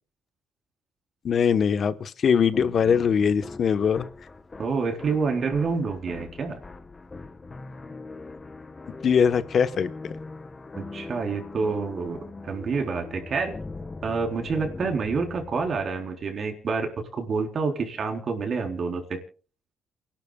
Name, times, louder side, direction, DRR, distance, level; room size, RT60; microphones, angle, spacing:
voice 1, 1.2-4.1 9.0-9.9, left 7 dB, 55° left, 1.2 m, -21 dB
sound 1, 2.5-16.2, left 3 dB, 25° left, 1.5 m, -41 dB
voice 2, 4.6-6.6 10.8-13.5 14.0-19.2, right 4 dB, 50° right, 4.1 m, -28 dB
28.5 x 12.0 x 2.4 m
cardioid pair, 90°, 0 cm